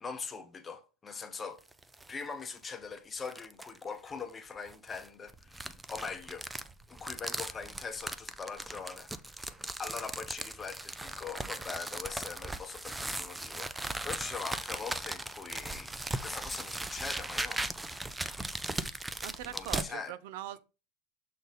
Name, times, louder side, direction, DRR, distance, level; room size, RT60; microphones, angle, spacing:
voice 1, 0.0-1.6 2.1-6.4 6.9-9.1 9.8-15.9 16.2-17.8 19.5-20.1, left 5 dB, 15° left, 0.8 m, -42 dB
sound 1, 1.6-2.1 2.6-2.7 3.2-3.8 4.7-19.9, right 2 dB, 5° right, 0.4 m, -38 dB
voice 2, 19.2-20.6, right 12 dB, 65° right, 0.5 m, -41 dB
6.4 x 3.9 x 4.1 m
supercardioid pair, 145°, 0 cm